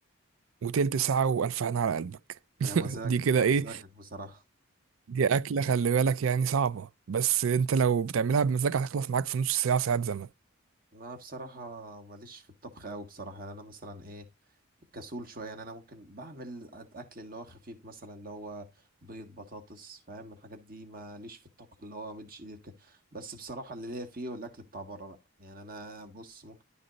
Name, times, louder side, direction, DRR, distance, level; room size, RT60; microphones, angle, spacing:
voice 1, 0.6-2.2 2.6-3.7 5.1-10.3, right 6 dB, 70° right, 0.4 m, -26 dB
voice 2, 2.6-3.1 3.4-4.4 10.9-14.3 14.9-26.6, right 1 dB, 40° right, 1.5 m, -43 dB
11.5 x 4.1 x 4.0 m
head